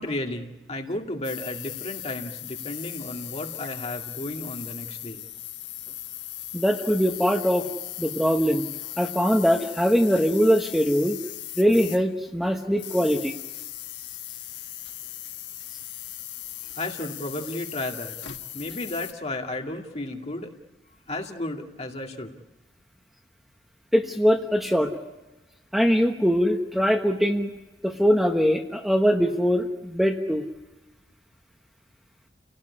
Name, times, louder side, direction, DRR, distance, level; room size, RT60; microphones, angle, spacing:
voice 1, 0.0-5.2 16.8-18.2 18.5-20.5 21.1-22.3, left 1 dB, 35° left, 2 dB, 2.3 m, -33 dB
sound 1, 1.2-12.3 12.7-19.1, left 12 dB, 75° left, 1.8 m, -38 dB
voice 2, 6.5-7.6 8.0-8.7 9.0-11.2 11.6-13.3 23.9-24.9 25.7-27.5 27.8-30.4, equal, ahead, 3 dB, 1.2 m, -22 dB
29.5 x 17.5 x 9.8 m, 1.1 s
head